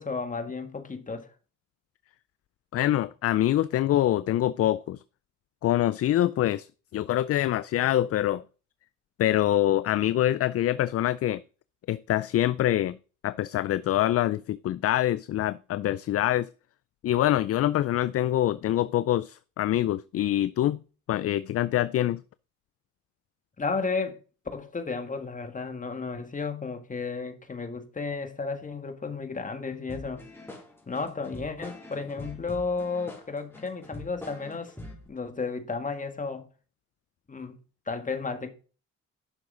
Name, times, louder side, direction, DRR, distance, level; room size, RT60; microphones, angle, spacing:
voice 1, 0.0-1.3 23.6-24.2 24.5-30.2 30.9-34.7 35.1-36.5 37.3-37.6 37.9-38.5, left 4 dB, 25° left, 1.8 m, -33 dB
voice 2, 2.7-5.0 5.6-8.4 9.2-11.4 11.9-13.0 13.2-16.5 17.0-20.8 21.1-22.2, left 13 dB, 50° left, 0.4 m, -25 dB
sound 1, 29.9-35.1, left 1 dB, 10° left, 3.6 m, -44 dB
11.0 x 6.5 x 3.8 m
cardioid pair, 90°, 30 cm